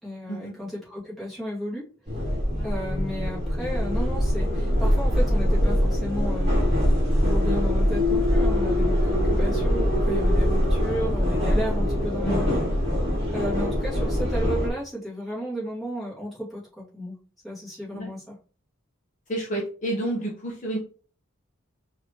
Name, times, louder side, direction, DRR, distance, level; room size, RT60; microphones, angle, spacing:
voice 1, 0.0-1.9 2.6-6.5 7.2-12.5 13.3-17.2 17.4-18.4, equal, ahead, -8 dB, 2.1 m, -33 dB
sound 1, 2.1-14.7, equal, 30° right, 1.8 m, -23 dB
voice 2, 12.2-12.5 17.9-18.1 19.3-20.8, right 1 dB, 35° left, -2 dB, 0.9 m, -30 dB
4.9 x 3.0 x 2.9 m, 0.39 s
head